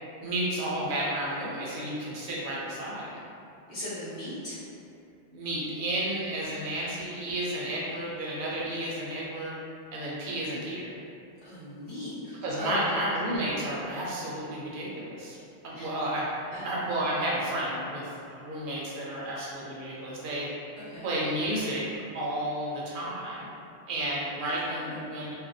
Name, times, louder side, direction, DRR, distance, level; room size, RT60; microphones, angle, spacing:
voice 1, 0.2-3.2 5.3-9.5 9.9-10.9 12.4-15.4 15.6-16.3 16.6-18.0 18.4-20.5 21.0-21.8 22.1-23.5 23.9-25.3, right 1 dB, 60° right, -5 dB, 0.6 m, -32 dB
voice 2, 3.7-4.6 7.9-8.0 11.4-12.8 15.7-15.9 16.5-16.7 20.9-21.1 24.8-25.1, left 1 dB, 80° left, -14 dB, 1.0 m, -38 dB
2.4 x 2.0 x 2.6 m, 2.6 s
omnidirectional pair, 1.1 m